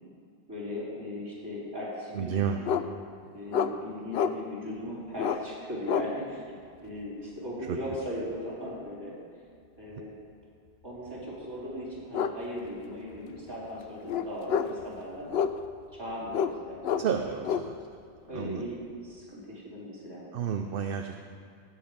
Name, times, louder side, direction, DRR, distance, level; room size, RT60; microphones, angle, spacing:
voice 1, 0.5-2.4 3.3-6.4 6.8-9.1 9.8-10.1 10.8-15.3 15.9-17.5 18.3-20.2, equal, 25° right, -8 dB, 4.2 m, -38 dB
voice 2, 2.1-2.6 7.7-7.8 17.0-17.7 18.3-18.6 20.3-21.2, right 7 dB, 65° right, 6 dB, 0.8 m, -31 dB
sound 1, 2.6-2.8 3.5-3.7 4.1-4.3 5.1-5.4 5.8-6.1 8.1-8.3 11.2-11.3 12.1-12.3 12.6-12.7 13.1-13.5 14.1-14.8 15.3-15.8 16.3-16.6 16.8-17.7, left 7 dB, 80° left, 0.8 m, -28 dB
18.5 x 8.2 x 5.1 m, 2.3 s
omnidirectional pair, 1.0 m